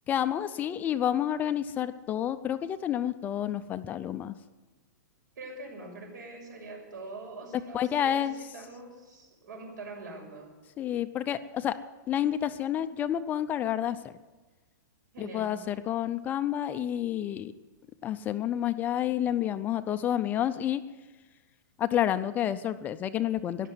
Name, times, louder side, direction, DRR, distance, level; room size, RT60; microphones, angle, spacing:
voice 1, 0.1-4.3 7.7-8.3 10.8-11.8 12.1-14.1 15.2-17.5 18.0-20.8 21.8-23.7, left 10 dB, 15° left, 11 dB, 0.4 m, -29 dB
voice 2, 5.4-10.5 15.1-15.6, right 2 dB, 80° right, 1 dB, 6.5 m, -44 dB
13.5 x 11.0 x 9.5 m, 1.2 s
hypercardioid pair, 160°, 10 cm